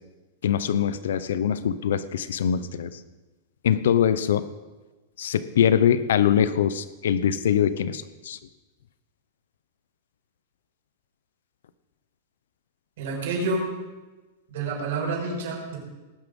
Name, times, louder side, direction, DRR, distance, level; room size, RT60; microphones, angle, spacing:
voice 1, 0.4-3.0 3.6-4.5 5.2-8.4, left 8 dB, 85° left, 14 dB, 0.7 m, -23 dB
voice 2, 13.0-13.7 14.5-15.8, right 3 dB, 55° right, -2 dB, 5.9 m, -28 dB
18.5 x 9.9 x 5.4 m, 1.2 s
supercardioid pair, 180°, 0 cm